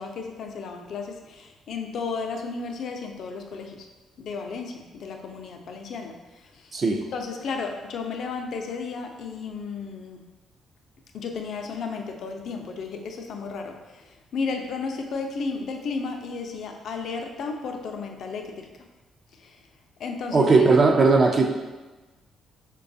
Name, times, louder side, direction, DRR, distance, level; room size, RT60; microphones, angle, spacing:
voice 1, 0.0-3.9 4.2-6.7 7.1-10.2 11.1-18.7 19.3-19.6 20.0-20.9, left 4 dB, 65° left, 4 dB, 0.4 m, -33 dB
voice 2, 6.7-7.0 20.3-21.5, right 3 dB, 45° right, 1 dB, 0.4 m, -18 dB
4.7 x 2.2 x 2.6 m, 1.2 s
cardioid pair, 90°, 0 cm